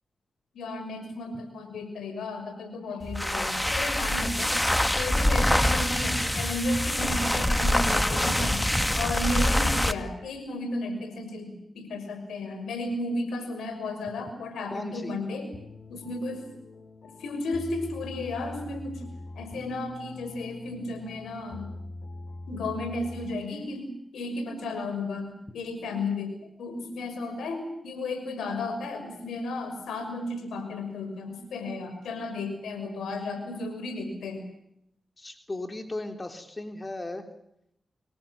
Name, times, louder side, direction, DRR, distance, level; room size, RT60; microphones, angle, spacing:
voice 1, 0.5-8.7 8.9-16.4 17.2-19.0 19.4-21.7 22.5-26.3 26.6-34.4, left 2 dB, 90° left, 8 dB, 6.0 m, -34 dB
sound 1, 3.0-10.0, left 1 dB, 10° left, 2.1 m, -25 dB
voice 2, 14.7-15.2 35.2-37.3, left 2 dB, 35° left, 6 dB, 3.6 m, -36 dB
sound 2, 15.5-23.6, left 2 dB, 65° left, 3.6 m, -43 dB
28.5 x 22.0 x 7.3 m, 0.77 s
supercardioid pair, 40°, 0 cm